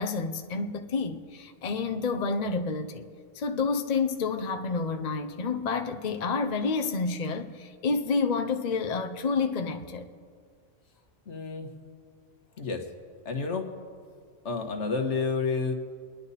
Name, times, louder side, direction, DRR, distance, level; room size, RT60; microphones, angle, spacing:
voice 1, 0.0-3.1 3.3-10.1, left 4 dB, 40° left, 0.7 m, -29 dB
voice 2, 11.3-11.7 12.6-12.9 13.3-13.7 14.5-15.7, left 4 dB, 65° left, 1.6 m, -29 dB
28.5 x 10.5 x 4.1 m
omnidirectional pair, 1.3 m